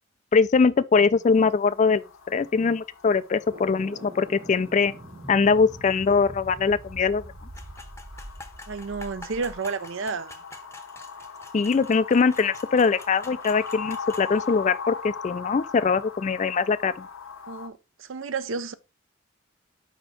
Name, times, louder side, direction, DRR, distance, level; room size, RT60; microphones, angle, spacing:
voice 1, 0.3-4.9 5.3-7.2 11.5-17.1, left 5 dB, 35° left, 0.3 m, -22 dB
sound 1, 1.2-17.7, left 5 dB, 75° left, 1.0 m, -41 dB
sound 2, 3.5-9.6, right 1 dB, 40° right, 1.7 m, -43 dB
sound 3, 7.5-14.3, left 2 dB, 15° left, 0.7 m, -46 dB
voice 2, 8.7-10.4 17.5-18.7, right 4 dB, 65° right, 0.6 m, -31 dB
5.3 x 4.3 x 4.8 m
head